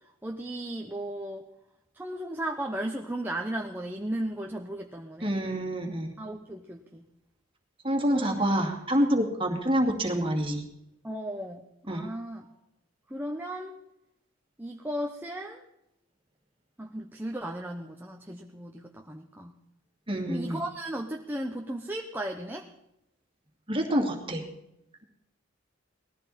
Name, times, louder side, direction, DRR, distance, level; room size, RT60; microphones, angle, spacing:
voice 1, 0.2-1.5 1.9-5.3 6.2-7.0 8.1-8.4 11.0-12.5 13.1-13.8 14.6-15.6 16.8-19.6 20.3-22.7, right 1 dB, 10° right, 2 dB, 0.8 m, -35 dB
voice 2, 5.2-6.1 7.8-10.6 11.9-12.1 20.1-20.6 23.7-24.4, equal, 25° right, 2 dB, 2.4 m, -27 dB
19.5 x 14.5 x 4.3 m, 0.85 s
head